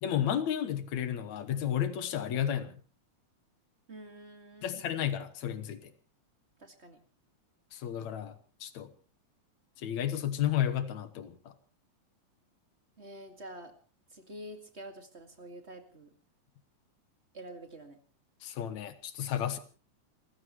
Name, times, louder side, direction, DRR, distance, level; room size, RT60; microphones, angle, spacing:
voice 1, 0.0-2.8 4.6-5.8 7.7-8.3 8.6-8.9 9.8-11.4 18.4-19.6, left 10 dB, 70° left, 12 dB, 2.5 m, -32 dB
voice 2, 3.9-4.8 6.6-7.0 13.0-13.7 14.1-16.1 17.3-18.0, right 1 dB, 25° right, 6 dB, 1.9 m, -47 dB
29.5 x 15.5 x 3.1 m, 0.36 s
omnidirectional pair, 3.5 m